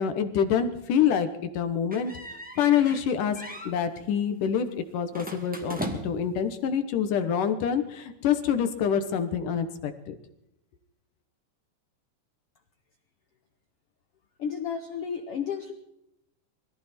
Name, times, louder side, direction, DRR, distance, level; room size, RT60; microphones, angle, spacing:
voice 1, 0.0-2.1 2.6-3.4 3.6-10.1, left 8 dB, 70° left, 9 dB, 2.6 m, -26 dB
sound 1, 1.9-3.1 3.4-3.7 5.1-6.3, right 1 dB, 5° right, 1.5 m, -37 dB
voice 2, 14.4-15.7, left 7 dB, 90° left, 8 dB, 1.3 m, -32 dB
23.5 x 14.0 x 4.4 m, 0.83 s
omnidirectional pair, 4.2 m